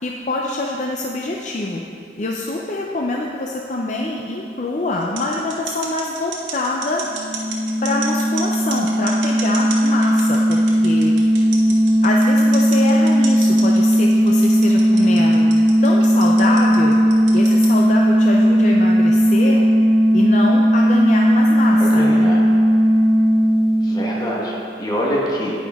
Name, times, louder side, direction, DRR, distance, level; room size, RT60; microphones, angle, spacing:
voice 1, 0.0-1.8 2.2-7.0 7.8-11.1 11.7-11.8 12.0-15.5 15.8-16.9 17.3-19.7 20.1-22.3, left 2 dB, 40° left, -1 dB, 0.5 m, -25 dB
sound 1, 5.0-17.8, right 6 dB, 80° right, 1.4 m, -32 dB
sound 2, 7.1-24.6, equal, 60° right, 0.6 m, -16 dB
voice 2, 21.8-22.4 23.8-24.5 24.8-25.5, equal, 20° left, -4 dB, 1.2 m, -24 dB
10.0 x 9.1 x 3.6 m, 2.6 s
head